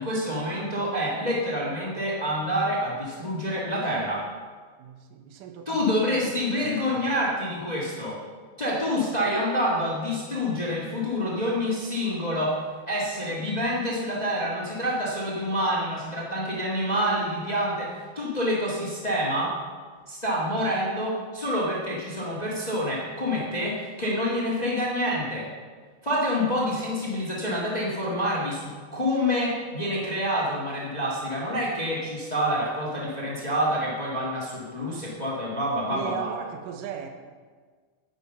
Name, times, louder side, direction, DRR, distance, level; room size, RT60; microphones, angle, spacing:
voice 1, 0.0-4.3 5.6-8.2 8.6-12.6 12.9-19.6 20.1-25.5 26.0-36.3, equal, 70° left, -5 dB, 0.4 m, -27 dB
voice 2, 4.8-6.1 6.5-7.1 35.9-37.1, right 8 dB, 70° right, 5 dB, 2.3 m, -38 dB
10.0 x 9.6 x 5.6 m, 1.6 s
omnidirectional pair, 4.4 m